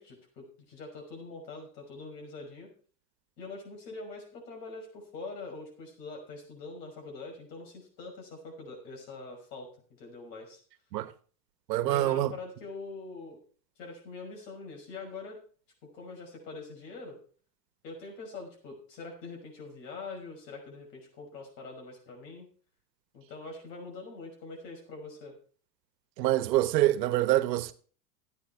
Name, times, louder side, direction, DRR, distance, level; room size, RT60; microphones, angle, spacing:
voice 1, 0.0-2.7 3.4-9.7 10.0-10.6 11.8-13.4 13.8-15.4 15.8-17.2 17.8-22.5 23.1-25.3, left 3 dB, 80° left, 5.9 m, -44 dB
voice 2, 11.7-12.3 26.2-27.7, right 15 dB, 80° right, 1.2 m, -25 dB
14.0 x 9.3 x 4.4 m
supercardioid pair, 145°, 49 cm